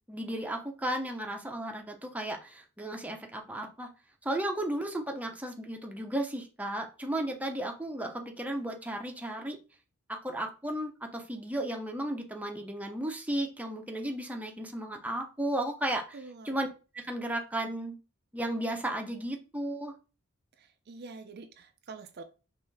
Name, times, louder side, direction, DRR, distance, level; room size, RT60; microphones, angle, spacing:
voice 1, 0.1-3.9 4.2-9.6 10.1-16.7 16.9-18.0 18.3-19.9, right 1 dB, 5° right, 2 dB, 0.6 m, -34 dB
voice 2, 16.1-16.6 20.9-22.2, right 4 dB, 50° right, 8 dB, 0.5 m, -45 dB
5.5 x 2.6 x 3.3 m, 0.32 s
head